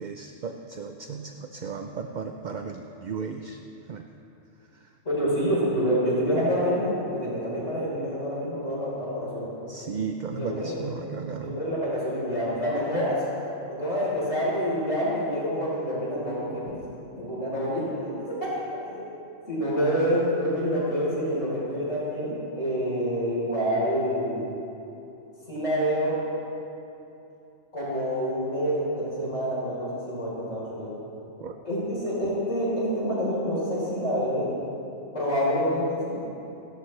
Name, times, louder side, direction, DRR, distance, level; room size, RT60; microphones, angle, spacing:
voice 1, 0.0-3.6 3.9-4.0 4.7-4.9 9.7-11.6 31.4-31.5 32.2-32.3, right 5 dB, 45° right, 4 dB, 0.6 m, -35 dB
voice 2, 5.0-9.5 10.4-10.8 11.4-13.2 13.7-16.7 17.2-19.1 19.5-24.5 25.5-26.2 27.7-31.0 31.6-34.5 35.1-36.2, equal, 65° left, -7 dB, 4.5 m, -27 dB
27.0 x 13.0 x 3.3 m, 2.9 s
omnidirectional pair, 1.4 m